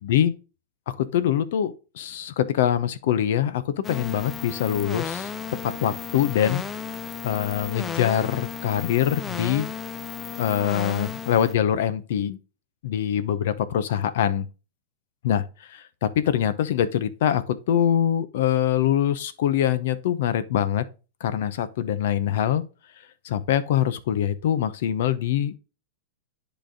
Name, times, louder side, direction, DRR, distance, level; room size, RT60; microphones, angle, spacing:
voice 1, 0.0-0.3 0.9-5.3 5.6-6.6 7.2-9.7 10.4-12.4 12.8-14.5 15.2-15.4 15.7-20.8 21.2-22.6 23.2-25.6, left 10 dB, 65° left, 0.8 m, -24 dB
sound 1, 3.8-11.5, left 7 dB, 15° left, 0.5 m, -34 dB
10.0 x 3.4 x 3.8 m
supercardioid pair, 145°, 0 cm